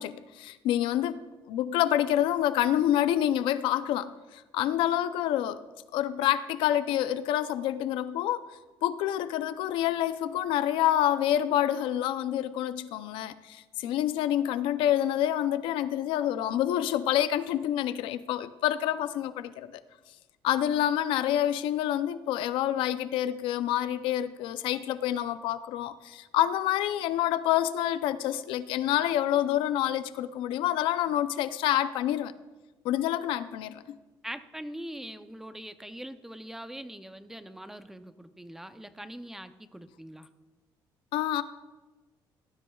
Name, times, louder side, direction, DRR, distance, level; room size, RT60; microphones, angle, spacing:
voice 1, 0.0-5.6 5.9-8.5 8.8-19.8 20.4-32.3 32.8-33.8 41.1-41.4, left 12 dB, 85° left, 13 dB, 0.5 m, -27 dB
voice 2, 34.2-40.3, right 1 dB, 5° right, 10 dB, 0.6 m, -42 dB
17.5 x 13.0 x 2.3 m, 1.2 s
cardioid pair, 140°, 8 cm